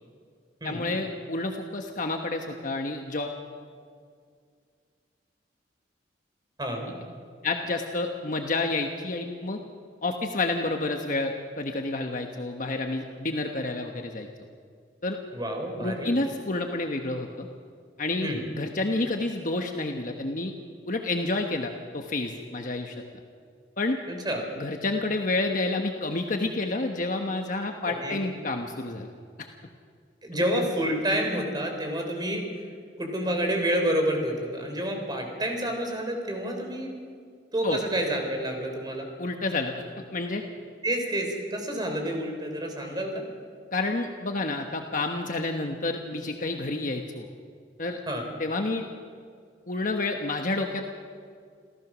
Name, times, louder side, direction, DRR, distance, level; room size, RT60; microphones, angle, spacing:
voice 1, 0.6-3.4 7.4-9.6 10.0-14.3 15.0-15.2 15.8-17.5 18.0-20.5 20.9-22.9 23.8-24.0 24.6-29.1 29.4-29.5 30.3-30.4 37.6-37.8 39.2-40.4 43.7-47.3 47.8-48.0 48.4-48.9 49.7-50.9, left 2 dB, 50° left, 3 dB, 1.2 m, -29 dB
voice 2, 6.6-6.9 15.3-16.1 18.2-18.5 24.1-24.4 27.9-28.2 30.2-32.6 33.0-37.0 37.5-39.1 40.8-43.2 48.1-48.2, right 1 dB, 25° right, 3 dB, 3.8 m, -29 dB
28.0 x 15.5 x 6.2 m, 2.1 s
head